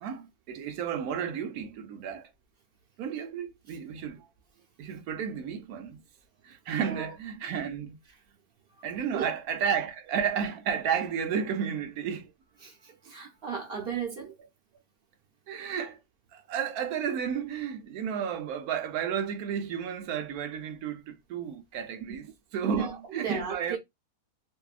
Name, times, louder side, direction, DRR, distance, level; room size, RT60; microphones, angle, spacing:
voice 1, 0.0-2.3 3.0-4.3 4.8-6.0 6.4-8.0 8.8-12.3 15.5-16.0 16.3-22.3 22.5-23.8, right 7 dB, 70° right, 1.0 m, -32 dB
voice 2, 12.6-14.4 22.1-22.2 22.6-23.8, right 7 dB, 45° right, 0.9 m, -36 dB
2.7 x 2.6 x 2.3 m
omnidirectional pair, 1.7 m